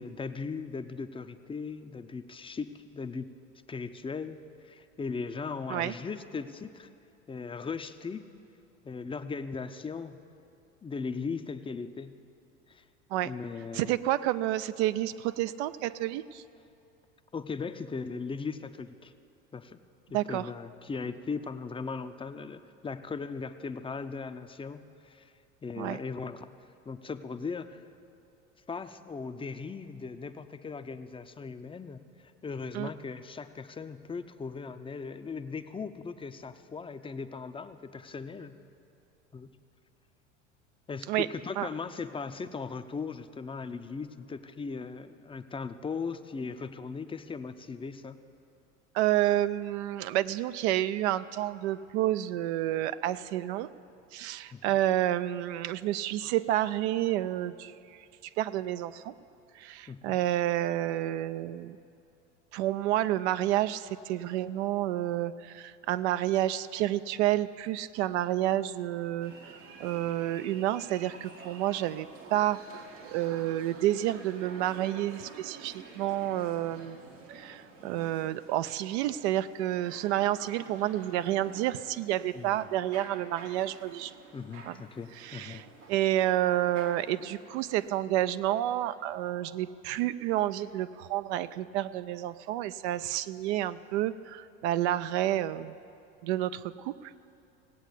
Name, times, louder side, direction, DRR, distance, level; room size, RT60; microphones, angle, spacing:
voice 1, 0.0-3.3 3.7-6.9 7.3-8.2 8.8-10.2 10.8-12.2 12.7-12.8 13.2-14.0 17.3-19.1 19.5-19.8 20.1-25.3 25.6-26.5 26.8-27.8 28.7-32.0 32.4-38.6 39.3-39.5 40.9-48.2 54.5-54.8 59.9-60.2 82.3-82.6 84.3-85.6, left 5 dB, 15° left, 10 dB, 0.6 m, -38 dB
voice 2, 13.7-16.4 20.1-20.5 25.8-26.0 32.7-32.9 41.1-41.3 41.6-41.7 48.9-53.7 54.1-57.8 58.4-59.1 59.6-61.8 62.5-69.3 69.8-72.6 73.0-77.0 77.3-84.1 84.6-84.8 85.2-95.7 96.2-96.9, right 13 dB, 65° right, 14 dB, 0.6 m, -29 dB
sound 1, 69.2-87.9, right 4 dB, 85° right, 1.9 m, -50 dB
17.5 x 8.1 x 8.1 m, 2.6 s
hypercardioid pair, 85°, 36 cm